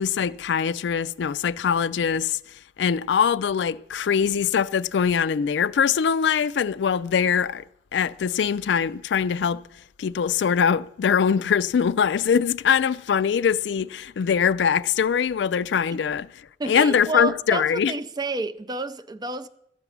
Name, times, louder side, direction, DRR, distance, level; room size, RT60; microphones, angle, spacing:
voice 1, 0.0-2.4 2.8-7.6 7.9-9.6 10.0-16.3 16.7-17.9, left 7 dB, 70° left, 0.4 m, -22 dB
voice 2, 16.6-19.5, right 3 dB, 25° right, 0.4 m, -30 dB
13.5 x 6.0 x 9.2 m
head